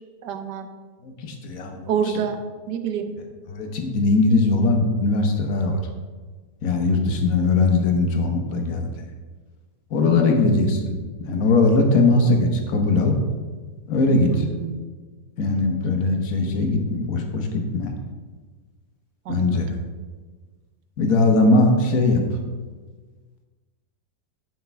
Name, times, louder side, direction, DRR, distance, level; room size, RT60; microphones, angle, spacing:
voice 1, 0.2-0.7 1.9-2.4 2.7-3.1 6.9-7.4 14.3-14.8 19.3-19.8, right 7 dB, 85° right, 8 dB, 1.4 m, -28 dB
voice 2, 1.0-1.9 3.5-5.8 6.6-8.9 9.9-11.0 11.3-13.2 13.9-14.5 15.4-17.9 19.3-19.7 21.0-22.4, left 3 dB, 60° left, 4 dB, 1.4 m, -20 dB
10.5 x 6.7 x 3.5 m, 1.4 s
omnidirectional pair, 1.8 m